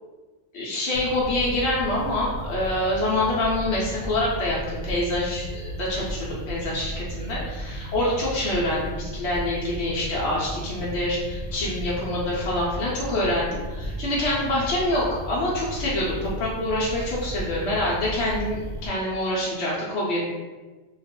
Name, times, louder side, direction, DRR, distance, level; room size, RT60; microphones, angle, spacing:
voice 1, 0.5-20.2, left 1 dB, 65° left, -5 dB, 0.8 m, -26 dB
sound 1, 0.9-18.9, equal, 65° right, 0.9 m, -34 dB
2.4 x 2.3 x 3.5 m, 1.3 s
omnidirectional pair, 1.3 m